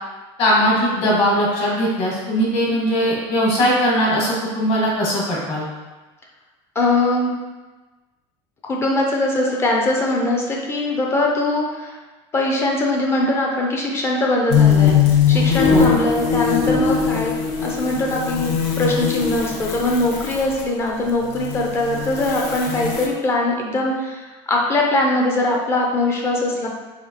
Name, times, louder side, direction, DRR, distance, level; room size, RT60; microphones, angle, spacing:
voice 1, 0.4-5.7 15.7-15.8, equal, 45° left, -4 dB, 1.2 m, -19 dB
voice 2, 6.8-7.3 8.6-12.0 12.3-17.3 17.6-26.7, left 2 dB, 20° left, -1 dB, 0.4 m, -21 dB
sound 1, 14.5-20.6 21.2-23.1, left 7 dB, 65° left, 0.6 m, -20 dB
4.9 x 2.4 x 2.8 m, 1.2 s
cardioid pair, 165°, 14 cm